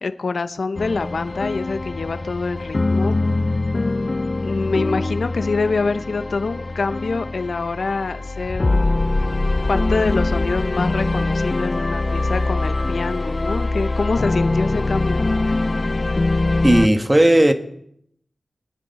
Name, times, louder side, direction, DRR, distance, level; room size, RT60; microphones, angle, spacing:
voice 1, 0.0-3.1 4.4-8.9 9.7-15.2, left 4 dB, 70° left, 0.8 m, -25 dB
sound 1, 0.8-16.9, left 2 dB, 45° left, 0.4 m, -23 dB
voice 2, 16.6-17.5, right 1 dB, 20° right, 1.7 m, -14 dB
20.5 x 9.9 x 4.2 m
cardioid pair, 45°, 0 cm